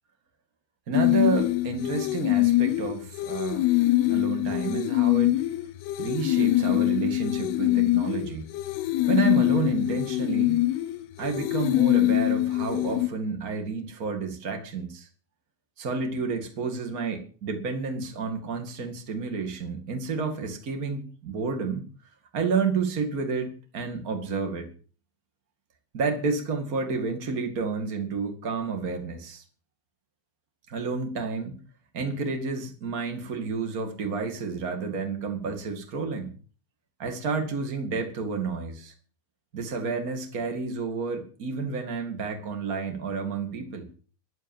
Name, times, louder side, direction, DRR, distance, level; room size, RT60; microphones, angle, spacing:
sound 1, 0.9-13.1, left 17 dB, 80° left, 2.3 m, -24 dB
voice 1, 0.9-3.8 4.1-5.3 6.0-8.5 9.1-10.6 11.2-15.1 15.8-21.8 22.3-24.7 25.9-29.4 30.7-31.6 31.9-36.3 37.0-38.9 39.5-43.9, right 4 dB, 90° right, 5 dB, 0.7 m, -30 dB
11.0 x 11.0 x 7.3 m, 0.41 s
omnidirectional pair, 5.7 m